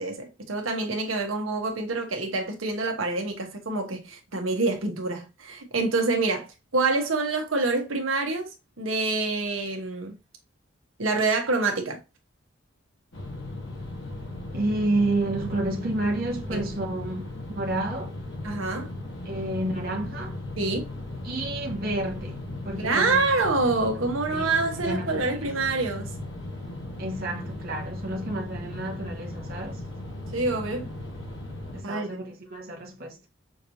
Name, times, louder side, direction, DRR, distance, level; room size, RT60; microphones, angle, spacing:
voice 1, 0.0-6.5 6.7-8.5 8.8-10.1 11.0-12.0 16.5-16.6 18.4-18.9 20.6-20.8 22.8-26.1 30.3-30.9 31.8-32.1, right 3 dB, 85° right, 1.1 m, -26 dB
sound 1, 13.1-31.8, left 1 dB, 65° left, 1.4 m, -37 dB
voice 2, 14.5-18.1 19.2-20.4 21.2-23.2 24.3-24.5 24.8-25.5 27.0-29.8 31.7-33.2, right 2 dB, 50° right, 1.0 m, -30 dB
5.8 x 3.0 x 2.7 m
head